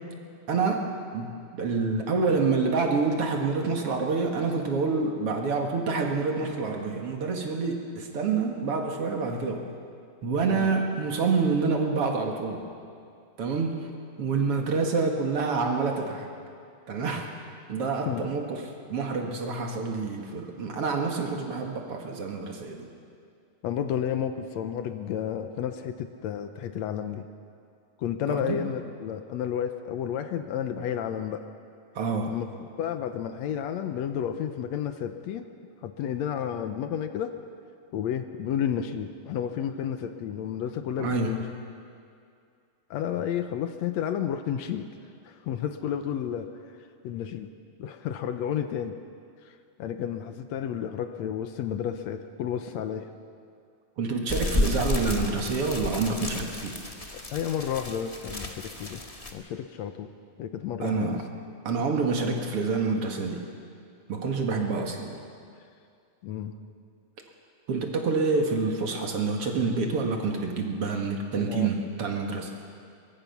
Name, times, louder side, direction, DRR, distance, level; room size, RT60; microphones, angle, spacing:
voice 1, 0.5-9.7 10.2-12.6 13.4-13.8 14.2-16.3 16.9-17.3 17.7-22.9 28.3-28.6 32.0-32.3 41.0-41.4 54.0-56.7 60.8-61.2 61.7-63.4 64.1-65.2 67.7-72.5, right 4 dB, 55° right, 2 dB, 2.5 m, -27 dB
voice 2, 23.6-27.3 28.0-31.5 32.3-35.4 35.8-37.3 37.9-41.4 42.9-44.9 45.3-46.5 47.0-47.5 47.8-48.9 49.5-49.6 49.8-53.1 57.3-59.0 59.3-60.1 60.4-61.2 66.2-66.6 71.4-71.7, left 9 dB, 75° left, 8 dB, 2.0 m, -31 dB
sound 1, 54.3-59.3, left 2 dB, 20° left, 1.0 m, -31 dB
23.0 x 21.5 x 5.9 m, 2.4 s
omnidirectional pair, 3.4 m